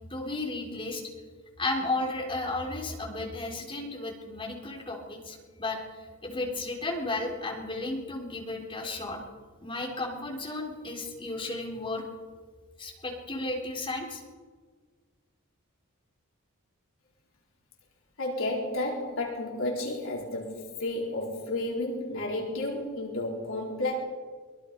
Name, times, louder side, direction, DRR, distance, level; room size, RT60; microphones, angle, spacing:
voice 1, 0.1-1.0 1.6-5.8 6.2-9.2 9.6-12.0 12.8-14.2, left 2 dB, 25° left, 0 dB, 3.9 m, -33 dB
voice 2, 18.2-24.0, left 1 dB, 65° left, -2 dB, 4.5 m, -32 dB
23.0 x 23.0 x 5.4 m, 1.5 s
head